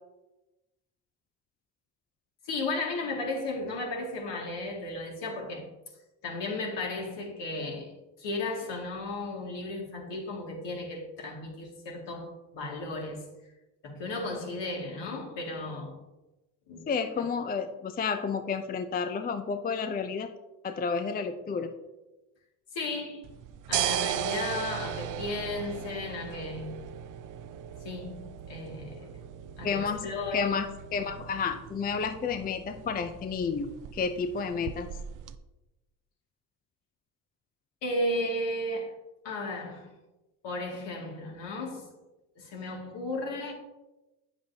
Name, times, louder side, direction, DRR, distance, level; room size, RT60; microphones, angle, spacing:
voice 1, 2.4-5.7 6.2-13.3 13.8-16.0 16.7-16.9 17.2-17.3 22.7-23.2 23.7-26.7 27.8-29.1 29.6-30.6 37.8-38.9 39.2-39.9 40.4-41.9 42.4-43.5, left 2 dB, 60° left, 2.4 m, -34 dB
voice 2, 16.9-20.3 20.6-21.7 29.6-34.9, left 5 dB, 20° left, 0.5 m, -31 dB
sound 1, 23.2-35.4, right 10 dB, 40° right, 0.5 m, -37 dB
8.8 x 7.1 x 2.8 m
supercardioid pair, 70°, 48 cm